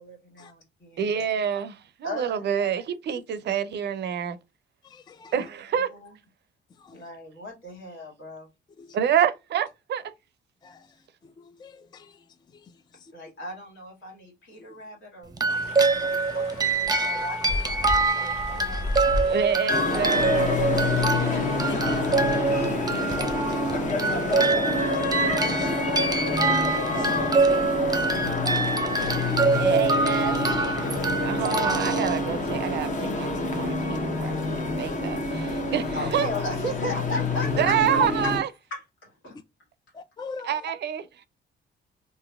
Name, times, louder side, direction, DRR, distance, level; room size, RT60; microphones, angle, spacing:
voice 1, 0.0-1.3 2.0-2.8 5.9-6.1 6.9-8.5 13.1-18.9 20.8-21.0 23.9-24.2 25.9-26.3 26.9-29.6 30.5-30.7 31.2-31.4 35.9-37.9 38.2-38.3 38.7-39.3, left 1 dB, 75° left, 1.8 m, -38 dB
voice 2, 1.0-4.4 5.3-5.9 8.9-10.1 19.3-20.7 29.5-30.6 31.2-36.3 37.6-38.5 40.4-41.2, right 8 dB, 60° right, 0.5 m, -27 dB
voice 3, 4.8-5.3 6.7-7.1 8.8-9.0 10.6-13.1 14.5-14.7 16.4-16.5 17.0-17.1 19.1-19.4 21.3-23.9 24.7-25.9 26.8-27.1 28.2-28.4 34.7-34.9 39.9-40.6, left 4 dB, 20° left, 0.3 m, -45 dB
sound 1, 15.3-32.8, right 3 dB, 20° right, 0.6 m, -25 dB
sound 2, 15.5-24.5, left 1 dB, 90° left, 0.9 m, -36 dB
sound 3, 19.7-38.4, left 2 dB, 40° left, 0.9 m, -27 dB
3.8 x 2.5 x 2.3 m
cardioid pair, 90°, 20 cm